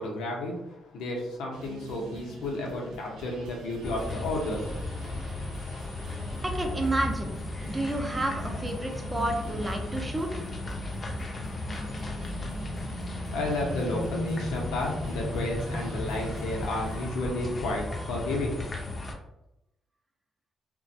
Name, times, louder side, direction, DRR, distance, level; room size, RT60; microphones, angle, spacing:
voice 1, 0.0-5.1 12.9-19.0, left 1 dB, 90° left, -1 dB, 0.6 m, -32 dB
sound 1, 1.5-17.1, right 4 dB, 75° right, 0.4 m, -46 dB
sound 2, 3.8-19.1, left 2 dB, 35° left, 0.5 m, -35 dB
voice 2, 6.4-7.3 7.7-10.4, right 1 dB, 15° right, 1 dB, 0.5 m, -30 dB
2.3 x 2.1 x 2.6 m, 0.90 s
cardioid pair, 90°, 0 cm